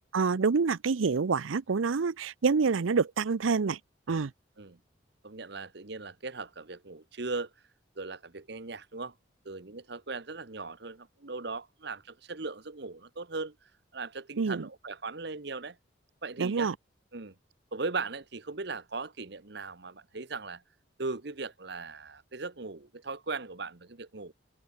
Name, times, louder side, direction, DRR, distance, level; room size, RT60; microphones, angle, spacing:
voice 1, 0.1-3.8 4.1-4.3 14.4-14.6 16.4-16.7, right 5 dB, 85° right, 0.6 m, -27 dB
voice 2, 5.2-7.5 8.0-9.1 9.4-13.5 13.9-15.8 16.2-16.7 17.1-17.3 17.7-20.6 21.0-24.3, right 3 dB, 55° right, 1.1 m, -38 dB
head